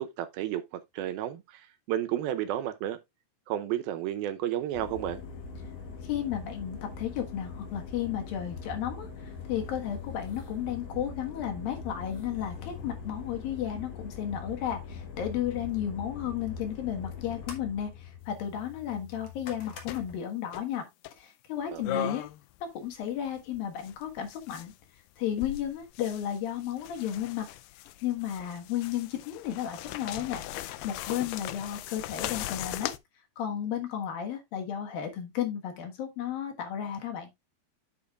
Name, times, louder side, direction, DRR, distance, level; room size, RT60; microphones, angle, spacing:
voice 1, 0.0-3.0 3.5-5.2 21.7-22.2, right 12 dB, 75° right, 2.5 m, -32 dB
sound 1, 4.7-20.2, left 5 dB, 50° left, 2.2 m, -42 dB
voice 2, 6.0-9.1 9.5-20.9 21.2-22.2 22.8-24.7 25.2-27.5 28.0-32.9 33.4-37.3, left 10 dB, 70° left, 3.1 m, -33 dB
sound 2, 18.2-18.4 19.9-20.2 20.5-20.6 21.0-21.1 21.8-22.6 22.9-24.8 25.3-33.0, left 14 dB, 85° left, 2.5 m, -39 dB
8.4 x 8.2 x 2.4 m
omnidirectional pair, 4.5 m